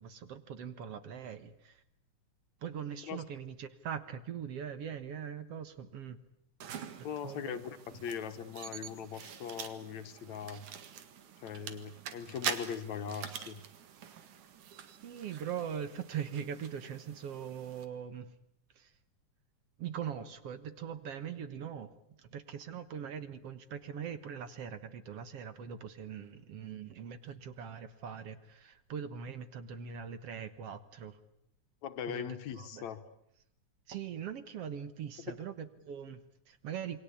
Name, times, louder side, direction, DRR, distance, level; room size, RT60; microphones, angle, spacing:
voice 1, 0.0-1.8 2.6-6.2 7.2-7.6 15.0-18.4 18.8-18.9 19.8-31.2 32.1-32.2 32.6-32.9 33.9-37.0, right 8 dB, 60° right, 12 dB, 2.0 m, -41 dB
sound 1, 6.6-17.8, right 8 dB, 80° right, 3.3 m, -45 dB
voice 2, 7.0-10.6 11.4-13.6 31.8-33.0, left 7 dB, 70° left, 10 dB, 2.6 m, -40 dB
28.0 x 23.5 x 8.5 m, 0.73 s
omnidirectional pair, 3.5 m